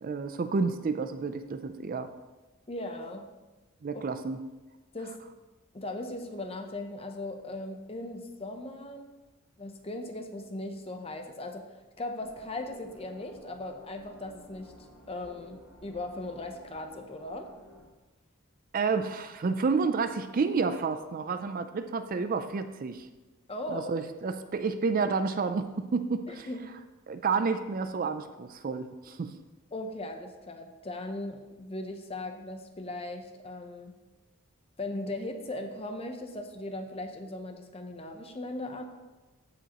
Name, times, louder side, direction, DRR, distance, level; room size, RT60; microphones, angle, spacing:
voice 1, 0.0-2.1 3.8-4.4 18.7-23.1 23.7-26.5 27.1-29.3, right 4 dB, 40° right, 10 dB, 0.4 m, -30 dB
voice 2, 2.7-3.3 3.9-4.1 4.9-5.2 5.7-9.1 9.6-17.5 23.5-23.9 26.3-26.7 29.7-33.9 34.8-38.8, left 2 dB, 30° left, 5 dB, 0.7 m, -38 dB
sound 1, 12.2-17.9, left 1 dB, ahead, 2.9 m, -54 dB
14.5 x 4.9 x 3.0 m, 1.1 s
head